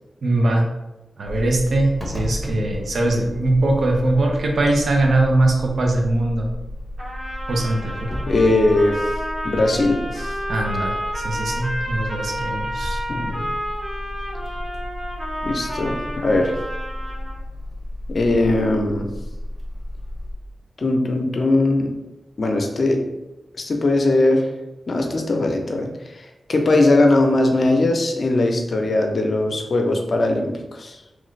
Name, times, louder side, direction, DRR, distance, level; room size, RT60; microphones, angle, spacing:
voice 1, 0.2-0.6 1.2-6.5 7.5-8.2 10.5-13.0, right 2 dB, 75° right, 1 dB, 0.6 m, -21 dB
sound 1, 1.3-20.3, left 1 dB, 20° right, 1.0 m, -33 dB
Trumpet, 7.0-17.4, equal, 45° right, 1.1 m, -30 dB
voice 2, 8.3-9.1 9.4-10.3 13.1-13.4 15.4-16.6 18.1-19.1 20.8-21.9 22.4-23.0 23.5-24.5 24.9-31.0, left 2 dB, 60° left, 3 dB, 0.5 m, -20 dB
3.0 x 2.4 x 3.1 m, 1.0 s
cardioid pair, 45°, 0 cm